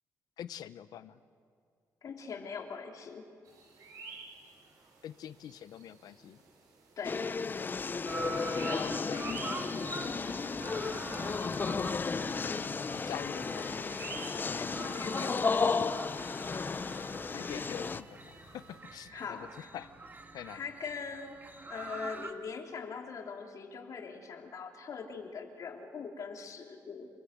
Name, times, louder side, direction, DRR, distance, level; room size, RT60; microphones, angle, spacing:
voice 1, 0.4-1.2 5.0-6.4 8.6-9.7 12.9-13.9 17.3-19.9 20.3-20.6, left 10 dB, 75° left, 14 dB, 0.9 m, -46 dB
voice 2, 2.0-3.3 7.0-7.3 14.5-16.0 19.1-19.7 20.5-21.4 21.7-27.1, left 5 dB, 55° left, 3 dB, 3.1 m, -42 dB
sound 1, 3.4-18.8, right 4 dB, 65° right, 6.8 m, -52 dB
sound 2, 7.0-18.0, left 4 dB, 30° left, 0.6 m, -33 dB
sound 3, 8.1-22.3, right 2 dB, 25° right, 1.9 m, -45 dB
27.5 x 20.5 x 8.2 m, 2.4 s
cardioid pair, 100°, 7 cm